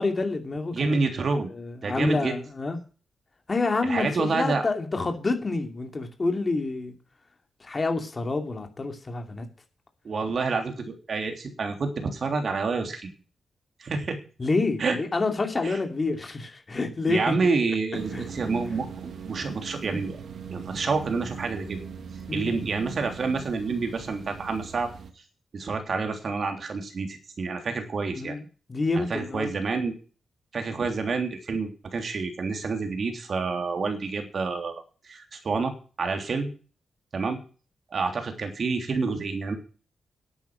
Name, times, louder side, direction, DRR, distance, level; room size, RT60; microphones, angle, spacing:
voice 1, 0.0-1.0 1.5-2.8 3.5-7.0 7.6-9.5 14.4-17.3 18.1-18.3 22.3-22.5 28.1-28.4 28.7-29.5, left 3 dB, 35° left, 5 dB, 2.6 m, -28 dB
voice 2, 0.7-1.5 1.8-2.4 3.8-4.7 10.0-13.1 13.8-14.2 14.8-15.0 15.6-15.8 17.1-20.2 20.5-21.8 22.3-24.9 25.5-28.4 29.0-29.9 30.5-35.7 36.0-36.5 37.1-37.4 37.9-39.6, right 4 dB, 55° right, 5 dB, 3.3 m, -28 dB
sound 1, 17.9-25.1, right 7 dB, 70° right, 1.9 m, -40 dB
11.0 x 9.1 x 6.2 m, 0.37 s
cardioid pair, 85°, 0 cm